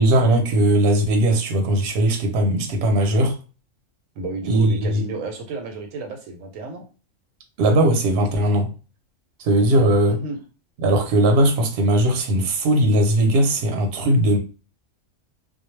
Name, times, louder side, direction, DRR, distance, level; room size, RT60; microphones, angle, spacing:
voice 1, 0.0-3.4 4.4-5.0 7.6-8.7 9.4-10.2 10.8-14.4, right 1 dB, 55° right, 0.8 m, -19 dB
voice 2, 4.2-6.8 10.1-10.4, right 3 dB, 80° right, 1.0 m, -32 dB
2.1 x 2.1 x 3.1 m
omnidirectional pair, 1.4 m